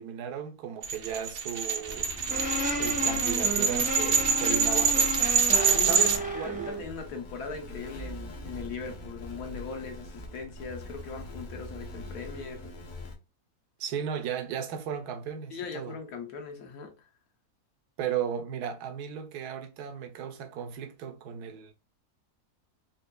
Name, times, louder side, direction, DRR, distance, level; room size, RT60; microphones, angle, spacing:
voice 1, 0.0-2.1 2.6-5.1 5.5-6.7 13.8-16.0 18.0-21.7, right 8 dB, 80° right, 1.2 m, -35 dB
sound 1, 0.8-6.2, right 6 dB, 60° right, 0.6 m, -25 dB
sound 2, 1.9-13.2, left 2 dB, 40° left, 0.7 m, -42 dB
sound 3, 2.3-6.8, right 1 dB, 10° right, 0.5 m, -33 dB
voice 2, 5.7-12.7 15.5-16.9, left 5 dB, 75° left, 1.4 m, -40 dB
4.4 x 2.8 x 2.2 m
omnidirectional pair, 1.7 m